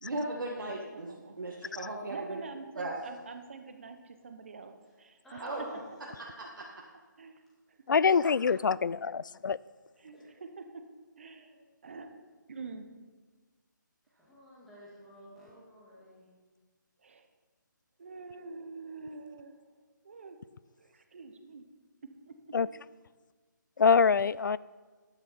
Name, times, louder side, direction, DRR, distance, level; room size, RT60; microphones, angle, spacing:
voice 1, 0.0-2.4 2.7-2.9 5.4-5.6 6.4-6.5, right 2 dB, 80° right, -3 dB, 1.8 m, -37 dB
voice 2, 0.9-1.4 2.1-4.7 5.0-5.4 7.2-7.4 10.0-10.1 10.4-10.9 11.2-11.5 11.8-12.1 12.5-12.9 17.0-17.3 18.0-19.6 20.0-20.4 20.8-21.6, right 4 dB, 40° right, 7 dB, 0.9 m, -45 dB
voice 3, 5.2-6.0 8.0-8.1 10.1-10.3 11.2-11.7 14.2-16.3, left 1 dB, ahead, -9 dB, 1.9 m, -50 dB
voice 4, 7.9-9.6 22.5-22.7 23.8-24.6, left 5 dB, 70° left, 20 dB, 0.4 m, -25 dB
12.5 x 9.8 x 4.3 m, 1.4 s
hypercardioid pair, 175°, 11 cm